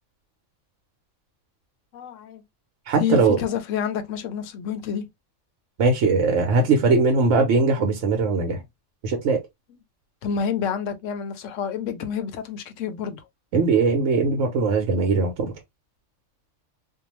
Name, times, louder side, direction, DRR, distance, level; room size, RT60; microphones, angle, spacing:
voice 1, 1.9-2.4 3.0-5.0 10.2-13.2, left 7 dB, 80° left, 1.0 m, -28 dB
voice 2, 2.9-3.4 5.8-8.6 9.0-9.4 13.5-15.5, right 4 dB, 75° right, 1.1 m, -20 dB
2.7 x 2.2 x 3.0 m
omnidirectional pair, 1.3 m